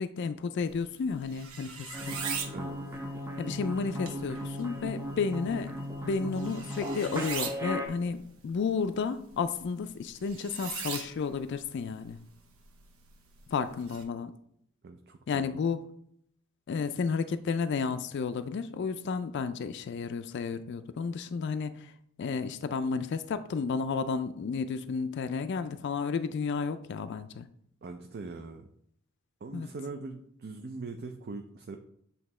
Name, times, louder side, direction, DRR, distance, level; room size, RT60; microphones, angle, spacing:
voice 1, 0.0-2.2 3.4-5.7 6.0-12.2 13.5-14.3 15.3-15.8 16.7-21.9 22.2-27.5 29.5-29.7, left 5 dB, 55° left, 10 dB, 0.3 m, -32 dB
sound 1, 0.6-14.0, right 6 dB, 90° right, 0.9 m, -43 dB
sound 2, 1.9-7.9, equal, 10° right, 0.7 m, -37 dB
voice 2, 14.8-15.5 27.8-28.7 29.4-31.8, right 3 dB, 50° right, 5 dB, 0.4 m, -41 dB
8.0 x 2.8 x 4.2 m, 0.69 s
head